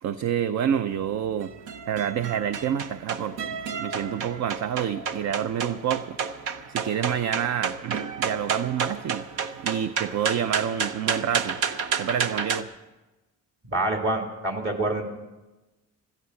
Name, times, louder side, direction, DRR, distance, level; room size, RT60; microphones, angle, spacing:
voice 1, 0.0-1.5 1.9-6.2 6.7-9.2 9.6-11.6 12.0-12.7, right 9 dB, 65° right, 12 dB, 0.6 m, -28 dB
sound 1, 0.9-12.6, right 6 dB, 90° right, 0.9 m, -31 dB
voice 2, 13.6-15.0, right 2 dB, 40° right, 2 dB, 3.1 m, -26 dB
16.0 x 13.5 x 5.8 m, 1.1 s
cardioid pair, 90°, 30 cm